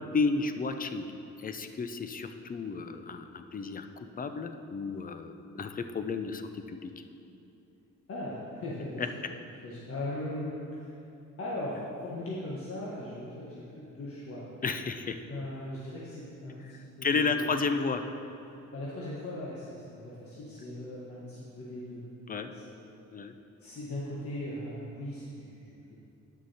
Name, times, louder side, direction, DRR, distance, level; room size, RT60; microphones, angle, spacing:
voice 1, 0.0-3.9 4.2-6.9 9.0-9.1 14.6-15.2 16.7-18.0 22.3-22.5 23.1-23.3, left 4 dB, 30° left, 8 dB, 0.5 m, -32 dB
voice 2, 8.1-9.3 9.6-10.9 11.4-14.4 15.3-17.5 18.5-22.0 22.3-22.9 23.6-25.9, left 1 dB, 50° left, -6 dB, 1.4 m, -39 dB
9.3 x 6.1 x 4.2 m, 2.8 s
cardioid pair, 90°, 30 cm